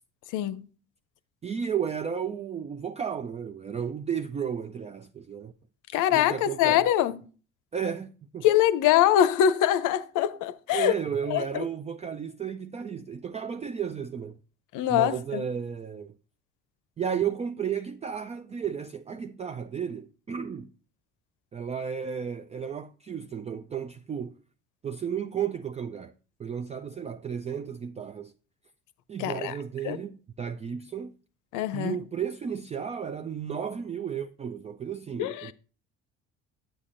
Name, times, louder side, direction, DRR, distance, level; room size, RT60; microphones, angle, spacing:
voice 1, 0.3-0.7 5.9-7.1 8.4-10.9 11.3-11.6 14.7-15.4 29.2-29.5 29.8-30.0 31.5-32.0 35.2-35.5, left 11 dB, 55° left, 0.7 m, -23 dB
voice 2, 1.4-5.5 6.1-6.9 7.7-8.5 10.7-14.4 14.9-16.1 17.0-20.7 21.5-24.4 24.8-26.1 26.4-28.3 29.1-31.2 31.7-35.5, right 7 dB, 20° right, 0.4 m, -33 dB
8.9 x 8.1 x 2.5 m
hypercardioid pair, 55°, 36 cm